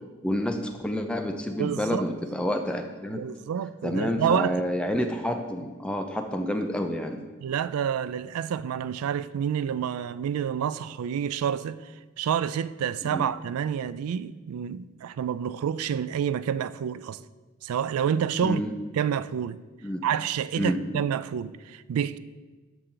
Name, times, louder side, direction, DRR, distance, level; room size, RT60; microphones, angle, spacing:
voice 1, 0.2-3.2 3.8-7.2 13.1-13.2 18.4-18.7 19.8-20.0 20.6-21.0, equal, 5° left, 0.5 m, -29 dB
voice 2, 1.6-2.0 3.1-4.6 7.4-11.9 12.2-17.2 17.6-18.6 18.9-19.6 20.0-22.2, right 8 dB, 85° right, 0.3 m, -28 dB
13.0 x 4.4 x 3.8 m
head